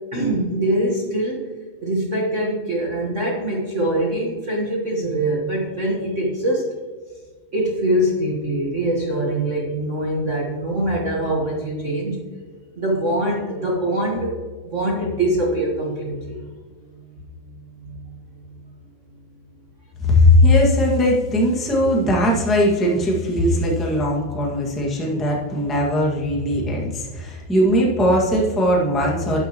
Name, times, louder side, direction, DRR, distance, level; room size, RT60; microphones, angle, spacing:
voice 1, 0.1-1.4 1.8-6.7 7.5-12.2 12.8-14.3 14.6-16.4 16.9-17.2 17.8-18.0, right 1 dB, 70° right, -3 dB, 0.7 m, -23 dB
voice 2, 20.0-29.4, left 1 dB, ahead, -3 dB, 0.9 m, -19 dB
12.5 x 8.8 x 3.1 m, 1.5 s
omnidirectional pair, 3.7 m